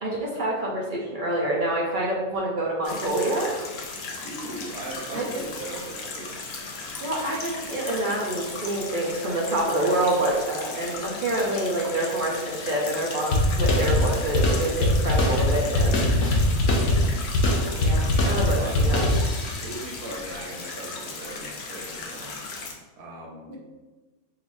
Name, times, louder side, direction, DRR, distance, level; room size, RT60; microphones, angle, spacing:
voice 1, 0.0-3.5 5.1-5.4 7.0-16.0 17.7-19.1 23.5-23.6, right 1 dB, 50° right, -3 dB, 0.6 m, -27 dB
sound 1, 2.8-22.7, left 3 dB, 55° left, 0.7 m, -37 dB
voice 2, 4.2-6.5 16.0-16.6 18.5-22.3 23.0-23.6, right 2 dB, 80° right, -1 dB, 1.4 m, -39 dB
sound 2, 13.3-19.7, left 1 dB, 75° left, 1.2 m, -22 dB
4.7 x 3.5 x 2.6 m, 1.2 s
omnidirectional pair, 1.6 m